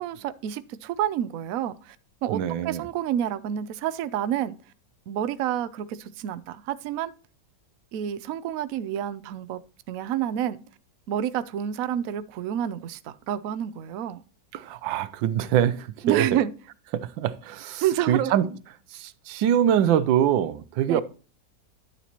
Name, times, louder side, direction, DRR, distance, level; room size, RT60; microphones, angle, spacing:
voice 1, 0.0-2.4 2.6-4.6 5.1-7.1 7.9-9.6 9.9-10.6 11.1-14.2 16.0-16.5 17.8-18.3 20.9-21.0, right 10 dB, 65° right, 0.8 m, -28 dB
voice 2, 2.3-2.8 14.5-16.3 16.9-18.5 18.9-21.0, right 10 dB, 85° right, 1.4 m, -24 dB
10.5 x 7.0 x 3.0 m
omnidirectional pair, 2.0 m